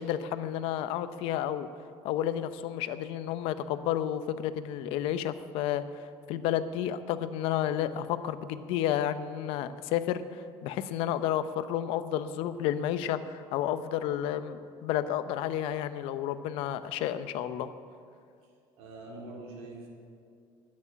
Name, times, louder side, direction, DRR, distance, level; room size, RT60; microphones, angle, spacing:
voice 1, 0.0-1.7 2.0-17.7, left 11 dB, 70° left, 12 dB, 0.7 m, -31 dB
voice 2, 18.8-19.9, right 2 dB, 80° right, -1 dB, 3.7 m, -44 dB
9.8 x 9.7 x 9.8 m, 2.3 s
cardioid pair, 160°, 10 cm